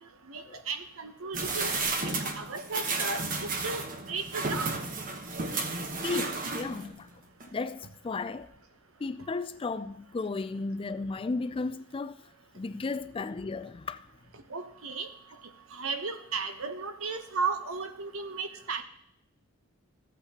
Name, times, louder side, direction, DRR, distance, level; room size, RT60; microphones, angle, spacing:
voice 1, 0.3-1.8 2.0-4.8 14.5-15.1 15.7-18.8, right 4 dB, 90° right, 1.0 m, -35 dB
sound 1, 1.3-7.0 7.4-7.5, right 3 dB, 40° right, 1.1 m, -33 dB
voice 2, 6.0-7.1 7.5-8.5 9.0-14.1, left 3 dB, 25° left, 0.3 m, -34 dB
15.0 x 8.4 x 2.9 m
head